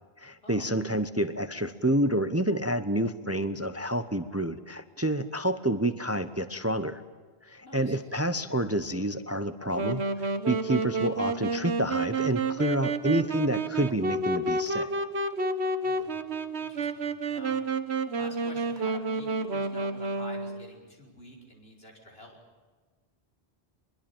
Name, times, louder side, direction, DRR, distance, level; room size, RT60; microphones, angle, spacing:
voice 1, 0.2-7.0 7.4-14.9, right 1 dB, 15° right, 11 dB, 0.9 m, -28 dB
voice 2, 7.6-8.0 15.8-16.1 16.6-17.6 18.1-22.4, equal, 70° left, 0 dB, 6.1 m, -48 dB
Wind instrument woodwind instrument, 9.7-20.7, right 3 dB, 90° right, 1.6 m, -30 dB
24.5 x 22.0 x 8.9 m, 1.4 s
omnidirectional pair, 1.1 m